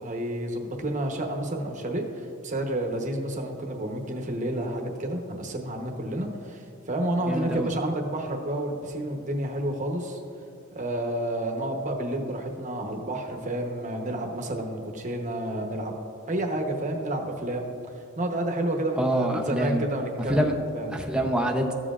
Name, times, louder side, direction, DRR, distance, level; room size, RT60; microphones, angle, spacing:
voice 1, 0.0-10.2 10.7-16.0 16.3-17.7 18.2-20.9, right 1 dB, 40° right, 2 dB, 1.0 m, -30 dB
voice 2, 7.3-7.7 19.0-19.8 20.3-20.5 20.9-21.7, right 1 dB, 5° right, 1 dB, 0.7 m, -25 dB
14.0 x 7.3 x 2.4 m, 2.6 s
head